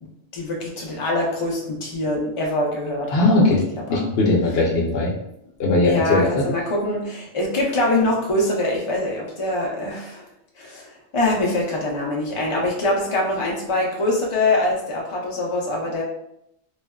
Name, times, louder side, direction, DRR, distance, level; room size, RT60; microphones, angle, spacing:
voice 1, 0.0-3.6 3.9-4.0 5.8-10.3 10.6-16.0, left 2 dB, 45° left, -2 dB, 0.4 m, -24 dB
voice 2, 3.1-3.6 3.9-5.1 5.6-6.3, left 2 dB, 65° left, -3 dB, 0.9 m, -18 dB
3.2 x 2.1 x 2.2 m, 0.78 s
omnidirectional pair, 1.2 m